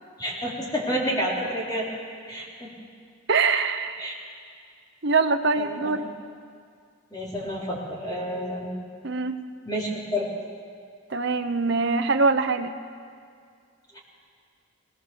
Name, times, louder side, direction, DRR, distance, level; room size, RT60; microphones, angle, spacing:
voice 1, 0.2-1.9 2.3-2.7 4.0-4.1 5.6-6.1 7.1-8.7 9.7-10.3 13.9-14.0, equal, 20° left, -4 dB, 3.7 m, -29 dB
voice 2, 3.3-4.0 5.0-6.0 9.0-9.4 11.1-12.7, right 4 dB, 55° right, 7 dB, 0.9 m, -23 dB
20.0 x 18.5 x 7.0 m, 2.2 s
head